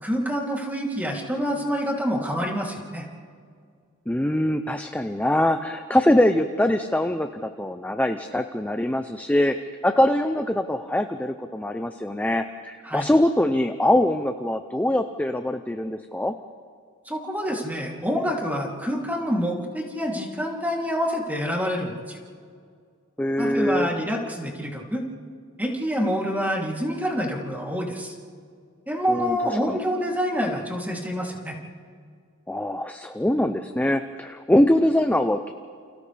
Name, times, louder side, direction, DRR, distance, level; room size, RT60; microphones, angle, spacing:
voice 1, 0.0-3.1 12.8-13.1 17.0-22.2 23.4-25.0 25.6-28.1 28.9-31.6, equal, 10° right, -2 dB, 3.0 m, -27 dB
voice 2, 4.1-9.6 9.8-16.3 23.2-23.9 29.1-29.8 32.5-35.5, left 1 dB, 5° left, 7 dB, 0.6 m, -23 dB
29.5 x 29.0 x 3.4 m, 2.1 s
head